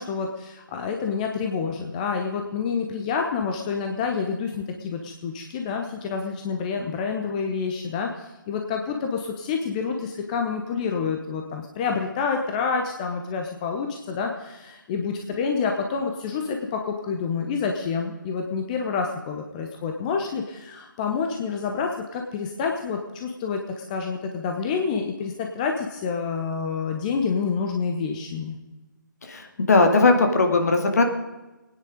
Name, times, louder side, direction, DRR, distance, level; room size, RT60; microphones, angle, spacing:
voice 1, 0.0-28.6, left 5 dB, 20° left, 3 dB, 1.1 m, -28 dB
voice 2, 29.2-31.0, left 3 dB, 50° left, 5 dB, 2.2 m, -19 dB
20.5 x 9.9 x 5.1 m, 1.1 s
figure-of-eight pair, 145°, 11 cm